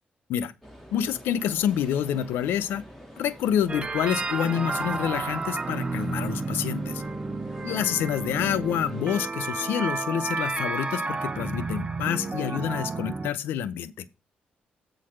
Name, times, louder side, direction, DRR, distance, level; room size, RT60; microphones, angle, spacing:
sound 1, 0.6-9.3, equal, 5° left, 2.4 m, -46 dB
voice 1, 0.9-2.8 3.2-7.0 7.6-14.1, left 9 dB, 90° left, 0.6 m, -27 dB
sound 2, 3.7-13.3, right 3 dB, 30° right, 0.8 m, -31 dB
8.5 x 4.0 x 6.4 m
cardioid pair, 80°, 4 cm